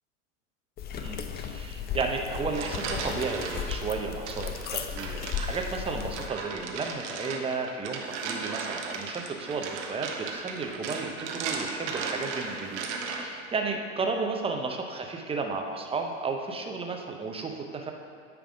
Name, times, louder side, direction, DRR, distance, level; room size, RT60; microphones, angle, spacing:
sound 1, 0.8-6.3, left 8 dB, 25° left, 0.5 m, -35 dB
voice 1, 0.9-17.9, right 4 dB, 15° right, 3 dB, 0.8 m, -33 dB
sound 2, 2.2-3.8 4.3-13.5, right 4 dB, 65° right, 1.0 m, -36 dB
9.1 x 3.5 x 5.1 m, 2.3 s
hypercardioid pair, 90°, 38 cm